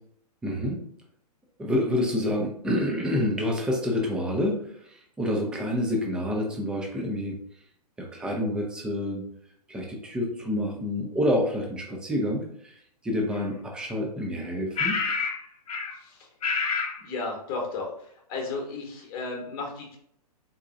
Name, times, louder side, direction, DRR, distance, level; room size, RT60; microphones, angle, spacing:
voice 1, 0.4-0.8 1.6-7.4 8.0-9.2 9.7-12.8 13.0-15.0, left 1 dB, 5° right, 0 dB, 0.4 m, -28 dB
sound 1, 13.3-13.4 14.8-15.4 15.7-16.0 16.4-17.0, left 5 dB, 65° left, 0.6 m, -27 dB
voice 2, 15.9-16.3 17.0-20.0, left 3 dB, 35° left, 1 dB, 0.9 m, -34 dB
3.9 x 2.2 x 2.5 m, 0.68 s
figure-of-eight pair, 120°, 21 cm